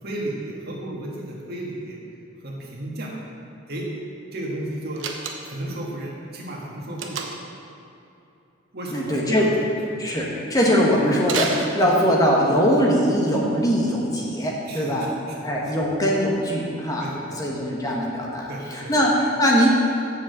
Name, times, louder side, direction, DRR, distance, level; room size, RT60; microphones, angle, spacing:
voice 1, 0.0-2.0 2.4-3.1 3.7-3.9 4.3-5.0 5.4-7.2 8.7-9.5 14.7-15.0 15.6-15.7 17.0-17.4 18.5-18.9, right 1 dB, 55° right, -3 dB, 1.9 m, -33 dB
Slam, 5.0-5.7 7.0-7.6 11.2-12.3, right 5 dB, 85° right, 1.0 m, -30 dB
voice 2, 8.9-9.5 10.0-15.1 15.4-17.1 17.3-19.7, equal, 20° left, -3 dB, 1.3 m, -21 dB
7.6 x 6.4 x 7.8 m, 2.8 s
head